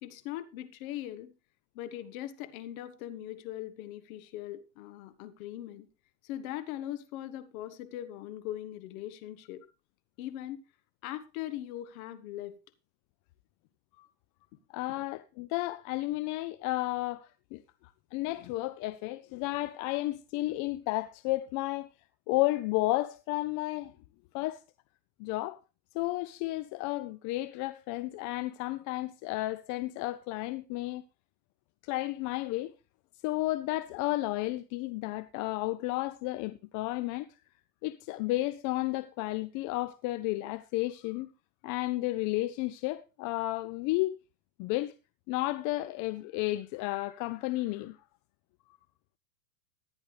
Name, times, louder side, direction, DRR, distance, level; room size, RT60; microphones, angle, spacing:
voice 1, 0.0-1.3 1.7-5.9 6.2-9.6 10.2-10.6 11.0-12.5, left 13 dB, 55° left, 1.3 m, -40 dB
voice 2, 14.7-17.6 18.1-21.9 22.3-23.9 24.3-24.6 25.2-25.6 25.9-31.0 31.8-32.7 33.2-37.3 37.8-41.3 41.6-44.2 44.6-44.9 45.3-48.0, left 18 dB, 40° left, 0.6 m, -32 dB
14.5 x 10.5 x 3.3 m
hypercardioid pair, 115°, 50 cm